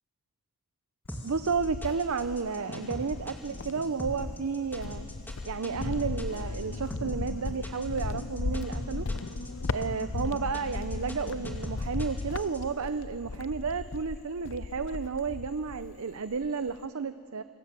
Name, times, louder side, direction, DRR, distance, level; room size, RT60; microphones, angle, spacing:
Cricket, 1.1-2.6 3.1-16.0 16.3-16.9, left 3 dB, 55° left, 0.6 m, -37 dB
sound 1, 1.1-12.6, equal, 10° left, 2.4 m, -41 dB
voice 1, 1.2-5.1 5.4-9.1 9.7-17.4, right 5 dB, 80° right, 12 dB, 0.6 m, -32 dB
sound 2, 2.0-11.6, left 2 dB, 85° left, 1.3 m, -45 dB
26.0 x 26.0 x 7.5 m, 2.5 s
head